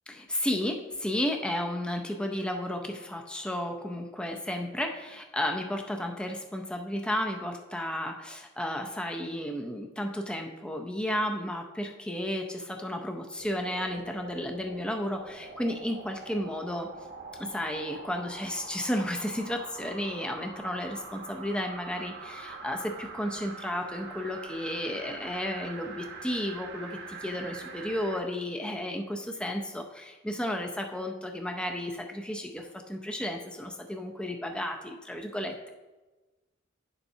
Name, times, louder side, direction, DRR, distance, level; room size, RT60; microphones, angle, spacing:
voice 1, 0.1-16.9 17.4-35.7, left 1 dB, 5° left, 3 dB, 0.5 m, -33 dB
sound 1, 13.3-28.3 28.7-28.8, right 4 dB, 55° right, 1.0 m, -44 dB
10.5 x 7.0 x 2.7 m, 1.2 s
head